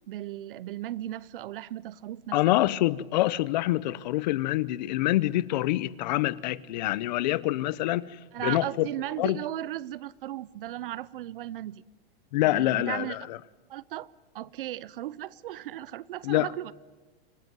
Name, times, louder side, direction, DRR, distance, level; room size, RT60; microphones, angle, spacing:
voice 1, 0.1-2.6 8.3-11.8 12.4-13.2 13.7-14.1 14.3-16.7, right 13 dB, 65° right, 0.8 m, -36 dB
voice 2, 2.3-8.0 8.4-8.9 9.2-9.4 12.3-13.4 16.2-16.5, left 16 dB, 50° left, 0.8 m, -26 dB
27.0 x 18.5 x 9.3 m
supercardioid pair, 170°, 29 cm